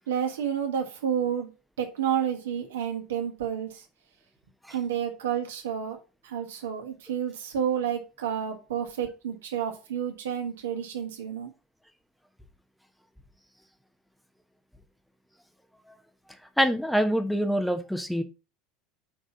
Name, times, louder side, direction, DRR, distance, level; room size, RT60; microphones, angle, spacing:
voice 1, 0.1-1.5 1.8-3.7 4.7-6.0 6.2-11.5, right 8 dB, 70° right, 1.5 m, -30 dB
voice 2, 16.6-18.2, equal, ahead, 1.1 m, -25 dB
6.5 x 4.0 x 5.1 m
figure-of-eight pair, 75°, 0 cm